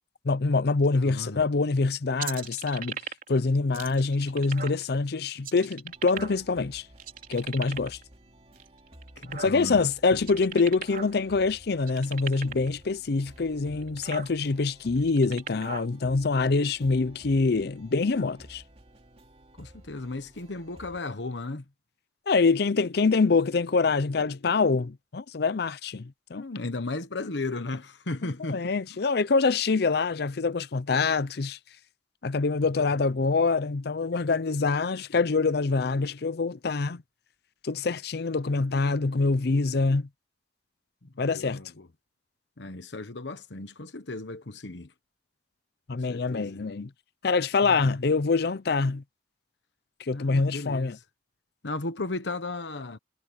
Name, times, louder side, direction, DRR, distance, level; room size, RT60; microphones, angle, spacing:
voice 1, 0.2-3.0 3.3-6.9 7.3-8.0 9.4-18.6 22.3-26.4 28.4-31.6 32.2-37.0 37.6-40.1 41.2-41.6 45.9-46.9 47.2-49.0 50.0-51.0, left 4 dB, 65° left, 0.6 m, -25 dB
voice 2, 0.9-1.4 9.2-9.8 19.6-21.6 26.3-28.7 32.8-32.9 41.0-41.9 42.6-44.9 45.9-46.6 47.6-48.1 50.1-50.9 51.6-53.0, left 2 dB, 85° left, 1.2 m, -35 dB
sound 1, 2.2-3.4 3.7-4.8 5.4-6.6 7.0-8.0 8.6-9.8 10.2-11.2 11.4-11.5 11.8-12.7 13.4-13.5 13.8-14.3 15.0-15.9, right 7 dB, 50° right, 4.3 m, -38 dB
sound 2, 5.9-21.0, right 1 dB, 35° right, 2.8 m, -53 dB
head